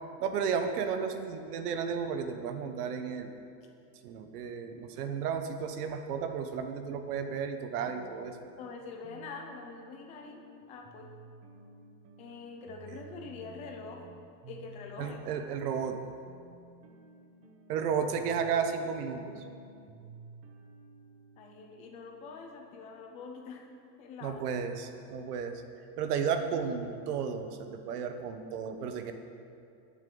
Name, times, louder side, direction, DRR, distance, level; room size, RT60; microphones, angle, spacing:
voice 1, 0.2-3.3 4.0-8.4 15.0-16.0 17.7-19.4 24.2-25.6 26.0-29.1, right 6 dB, 65° right, 7 dB, 1.2 m, -33 dB
sound 1, 6.9-23.1, right 3 dB, 30° right, 1.0 m, -54 dB
voice 2, 8.6-10.4 10.7-11.1 12.2-14.0 14.5-15.3 21.4-23.7 24.0-24.4, left 4 dB, 15° left, 2 dB, 0.5 m, -45 dB
20.5 x 7.6 x 3.9 m, 2.4 s
supercardioid pair, 175°, 49 cm